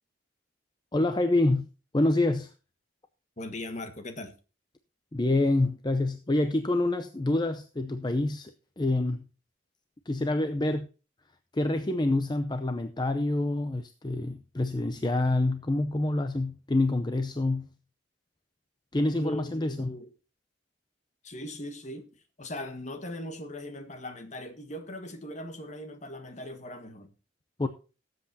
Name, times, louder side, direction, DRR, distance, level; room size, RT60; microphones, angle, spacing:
voice 1, 0.9-1.7 1.9-2.5 5.1-8.5 8.8-9.2 10.1-10.9 11.5-17.7 18.9-20.0 27.6-27.7, left 2 dB, 25° left, 0.6 m, -27 dB
voice 2, 3.4-4.3 19.2-20.1 21.2-22.1 22.4-27.1, left 1 dB, 40° left, 1.5 m, -39 dB
18.5 x 7.9 x 2.7 m
head